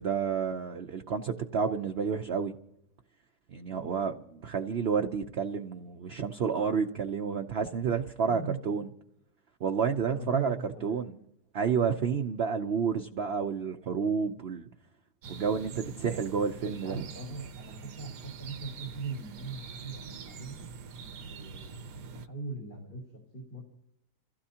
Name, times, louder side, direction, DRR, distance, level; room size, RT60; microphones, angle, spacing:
voice 1, 0.0-2.5 3.5-8.9 9.6-10.6 10.8-11.1 11.5-14.7 15.3-17.0, right 6 dB, 55° right, 4 dB, 0.7 m, -30 dB
voice 2, 8.2-8.9 10.0-11.2 16.7-20.6 21.3-21.9 22.1-23.0 23.3-23.6, right 4 dB, 70° left, -1 dB, 3.8 m, -40 dB
sound 1, 15.2-22.3, right 5 dB, 75° right, 1.4 m, -44 dB
29.0 x 16.0 x 2.8 m, 0.80 s
omnidirectional pair, 1.8 m